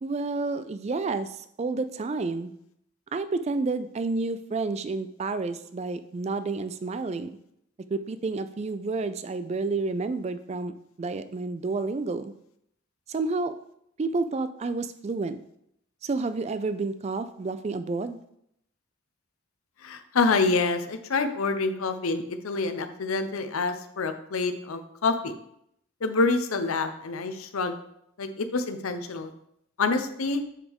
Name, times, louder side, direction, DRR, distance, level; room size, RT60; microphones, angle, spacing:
voice 1, 0.0-2.5 3.1-7.3 7.9-12.3 13.1-13.6 14.0-15.4 16.0-18.2, right 3 dB, 30° right, 12 dB, 0.3 m, -30 dB
voice 2, 19.8-25.3 26.0-27.8 28.2-29.3 29.8-30.4, left 3 dB, 85° left, 9 dB, 0.6 m, -27 dB
7.3 x 4.6 x 3.5 m, 0.76 s
head